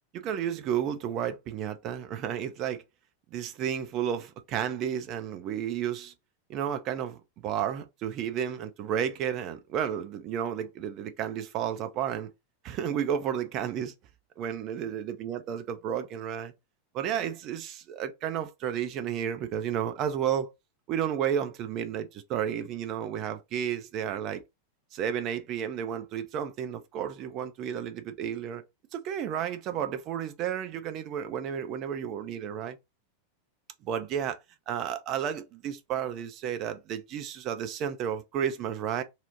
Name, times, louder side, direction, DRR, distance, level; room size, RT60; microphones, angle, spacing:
voice 1, 0.1-2.8 3.3-6.1 6.5-12.3 12.6-13.9 14.4-16.5 16.9-20.5 20.9-24.4 24.9-28.6 28.9-32.8 33.8-34.4 34.7-39.0, right 9 dB, 40° right, 0.4 m, -32 dB
2.8 x 2.0 x 2.7 m
figure-of-eight pair, 90°, 0 cm